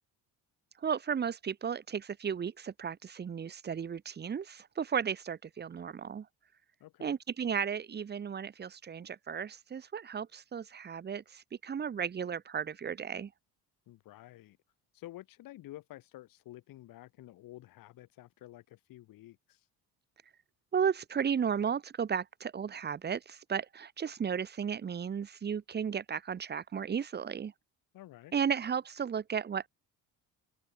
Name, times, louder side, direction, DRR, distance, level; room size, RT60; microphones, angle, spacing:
voice 1, 0.8-6.3 7.0-13.3 20.7-27.5 28.3-29.7, right 7 dB, 30° right, 1.6 m, -34 dB
voice 2, 6.8-7.2 13.9-14.6 14.9-19.7 27.9-28.3, left 15 dB, 70° left, 5.7 m, -51 dB
cardioid pair, 160°, 35 cm